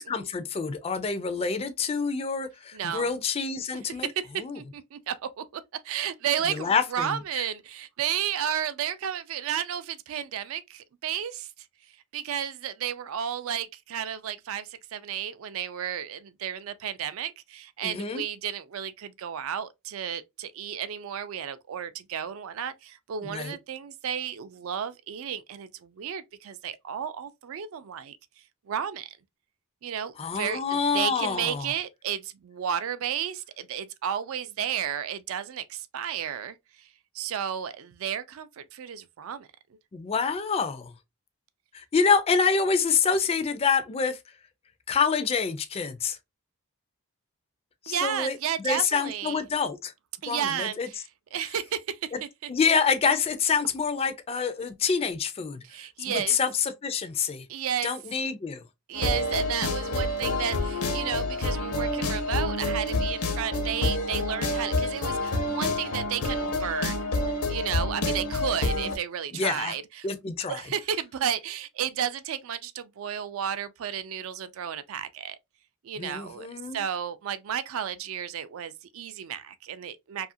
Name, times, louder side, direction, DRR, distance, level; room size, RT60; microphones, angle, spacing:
voice 1, 0.0-4.1 4.4-4.6 6.5-7.2 17.8-18.2 23.2-23.6 30.2-31.7 39.9-40.9 41.7-44.2 44.9-46.2 47.8-48.4 48.6-49.9 50.3-50.9 52.1-52.2 52.5-55.6 56.1-57.5 57.8-58.6 69.3-69.8 70.0-70.6 76.0-76.8, left 5 dB, 25° left, 0.3 m, -27 dB
voice 2, 2.7-3.1 4.0-11.5 12.1-28.2 28.7-29.1 29.8-36.9 37.1-39.5 47.9-49.4 50.2-51.0 51.3-52.5 55.6-56.4 57.5-57.9 58.9-70.1 70.5-75.4 75.8-80.3, right 9 dB, 65° right, 0.3 m, -33 dB
sound 1, 58.9-69.0, left 2 dB, 80° left, 0.7 m, -28 dB
2.7 x 2.4 x 2.5 m
head